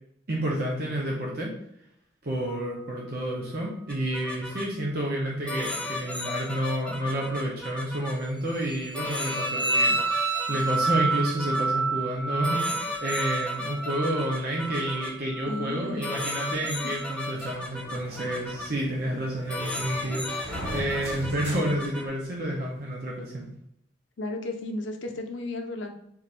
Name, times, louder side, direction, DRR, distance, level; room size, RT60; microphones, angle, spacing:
voice 1, 0.3-1.5 2.2-23.5, right 1 dB, 55° right, -2 dB, 0.7 m, -30 dB
sound 1, 3.9-4.6 5.5-8.1 8.9-11.6 12.4-15.1 16.0-18.7 19.5-22.1, left 2 dB, 5° left, 0.5 m, -35 dB
sound 2, 8.6-17.4, right 3 dB, 70° right, 1.2 m, -30 dB
voice 2, 15.5-16.0 24.2-25.9, left 2 dB, 85° left, 3 dB, 0.6 m, -33 dB
sound 3, 17.3-22.6, right 1 dB, 35° right, 1.6 m, -40 dB
3.7 x 2.5 x 4.3 m, 0.75 s
head